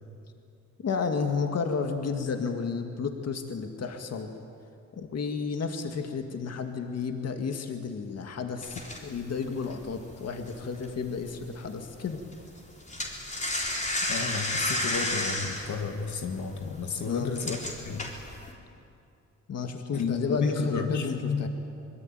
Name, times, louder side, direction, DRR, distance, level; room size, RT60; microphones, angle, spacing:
voice 1, 0.8-4.3 4.9-12.2 17.0-17.4 19.5-21.5, left 5 dB, 55° left, 5 dB, 2.0 m, -32 dB
sound 1, 8.6-11.3 11.6-11.9 12.2-18.5, left 1 dB, 25° left, 3.8 m, -32 dB
voice 2, 14.1-17.6 17.8-18.1 19.9-21.5, left 5 dB, 70° left, 5 dB, 2.0 m, -32 dB
25.0 x 23.0 x 9.1 m, 2.6 s
wide cardioid pair, 140°, 30 cm